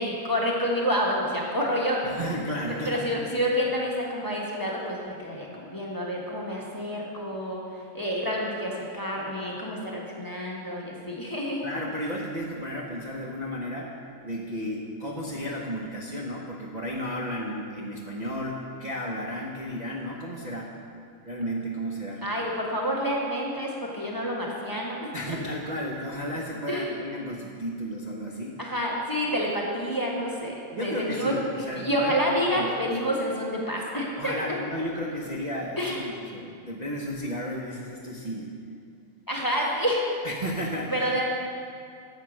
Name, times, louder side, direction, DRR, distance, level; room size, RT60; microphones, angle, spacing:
voice 1, 0.0-2.1 2.7-7.6 7.9-11.6 22.2-25.4 26.7-26.9 28.6-34.3 35.8-36.0 39.3-40.0 40.9-41.2, equal, 15° left, -3 dB, 1.3 m, -28 dB
voice 2, 2.0-3.2 11.6-13.9 14.2-20.7 21.2-22.3 25.1-28.6 30.7-32.1 32.4-32.9 34.2-38.5 40.2-41.1, equal, 35° right, -5 dB, 0.9 m, -33 dB
9.2 x 7.8 x 6.2 m, 2.3 s
omnidirectional pair, 1.5 m